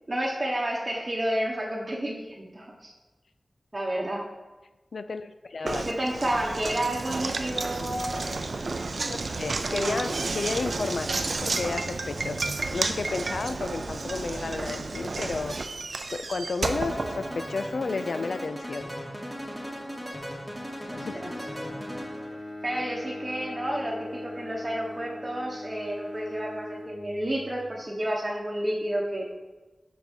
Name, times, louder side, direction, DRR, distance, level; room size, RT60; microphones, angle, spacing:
voice 1, 0.1-2.9 3.7-4.3 5.6-8.3 9.7-10.0 20.9-21.3 22.6-29.3, right 1 dB, 30° right, -4 dB, 1.1 m, -30 dB
voice 2, 4.9-5.9 9.1-15.6 16.1-18.9 20.9-21.3 22.7-22.8, left 4 dB, 85° left, 11 dB, 0.4 m, -32 dB
Knock, 5.7-17.8, right 3 dB, 75° right, 0.4 m, -31 dB
sound 1, 16.7-22.4, equal, ahead, 2.1 m, -37 dB
Bowed string instrument, 20.9-27.6, left 1 dB, 35° left, 1.3 m, -40 dB
6.2 x 5.3 x 4.5 m, 1.2 s
wide cardioid pair, 55°, 0 cm